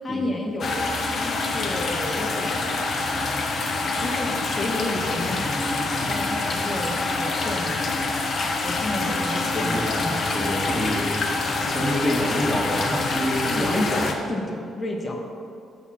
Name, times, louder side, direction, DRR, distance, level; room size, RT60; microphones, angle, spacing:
voice 1, 0.0-2.8 4.0-7.8 8.5-10.2 10.7-11.0 13.6-15.2, left 1 dB, 35° left, 1 dB, 1.4 m, -31 dB
sound 1, 0.6-14.1, left 3 dB, 50° left, 1.1 m, -26 dB
voice 2, 10.3-11.0 11.6-14.1, equal, 5° left, -5 dB, 2.3 m, -27 dB
12.5 x 4.3 x 5.8 m, 2.5 s
cardioid pair, 85°, 0 cm